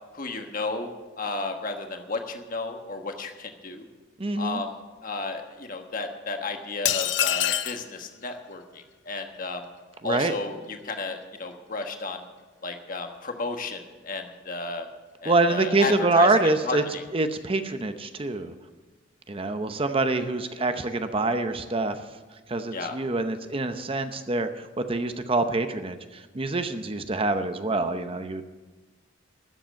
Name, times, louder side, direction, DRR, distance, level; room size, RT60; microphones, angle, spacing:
voice 1, 0.1-0.9 1.2-3.9 4.4-4.8 5.0-9.6 10.0-12.2 12.6-14.9 15.2-16.3 16.6-17.0 22.7-23.0, left 3 dB, 50° left, 5 dB, 1.3 m, -33 dB
voice 2, 4.2-4.6 10.0-10.3 15.2-16.8 17.1-18.5 19.3-22.0 22.5-28.5, right 2 dB, 30° right, 8 dB, 0.8 m, -25 dB
sound 1, 6.9-7.8, left 12 dB, 70° left, 0.5 m, -25 dB
13.0 x 7.9 x 8.9 m, 1.2 s
head